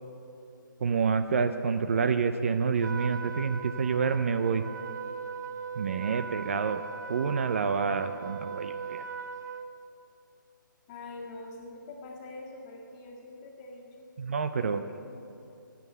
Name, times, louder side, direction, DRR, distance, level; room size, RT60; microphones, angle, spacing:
voice 1, 0.8-4.6 5.8-6.8 7.1-9.1 14.2-14.8, right 5 dB, 40° right, 10 dB, 0.5 m, -28 dB
Trumpet, 2.8-9.7, right 6 dB, 60° right, 0.9 m, -39 dB
voice 2, 10.9-14.1 14.6-15.3, left 2 dB, 20° left, -1 dB, 1.8 m, -45 dB
14.0 x 9.3 x 8.1 m, 2.7 s
hypercardioid pair, 160°, 11 cm